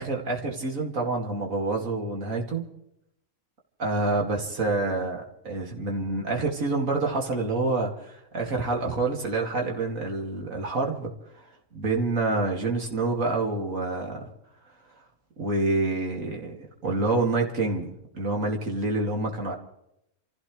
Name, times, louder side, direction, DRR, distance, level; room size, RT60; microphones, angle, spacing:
voice 1, 0.0-2.6 3.8-11.1 11.7-14.2 15.4-19.6, right 3 dB, 80° right, 1 dB, 2.8 m, -27 dB
27.5 x 15.5 x 3.2 m, 0.80 s
omnidirectional pair, 1.4 m